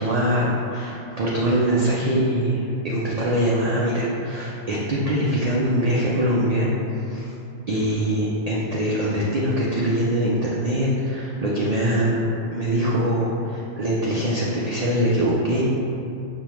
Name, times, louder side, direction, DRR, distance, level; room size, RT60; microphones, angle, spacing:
voice 1, 0.0-7.3 7.7-15.6, equal, 65° right, -6 dB, 0.3 m, -23 dB
5.3 x 2.2 x 3.0 m, 2.6 s
omnidirectional pair, 1.2 m